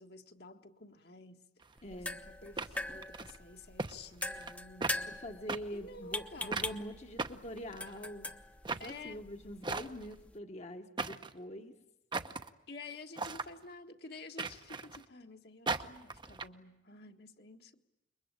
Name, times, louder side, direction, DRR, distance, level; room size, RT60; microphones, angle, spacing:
voice 1, 0.0-1.4 1.9-5.2 5.7-6.8 8.8-9.2 12.7-17.8, left 3 dB, 60° left, 1.7 m, -51 dB
sound 1, 1.6-1.7 2.6-3.4 3.8-3.9 4.2-4.6 4.8-5.0 5.5-5.6 6.5-6.7 7.2-8.1 8.6-8.9 9.6-10.1 11.0-11.3 12.1-12.5 13.2-13.5 14.4-15.0 15.7-16.5, right 3 dB, 25° right, 0.9 m, -37 dB
voice 2, 1.8-2.2 5.2-8.3 8.7-11.7, equal, 35° left, 1.3 m, -44 dB
sound 2, 1.8-10.4, left 2 dB, 10° left, 0.9 m, -43 dB
28.0 x 23.0 x 9.0 m
head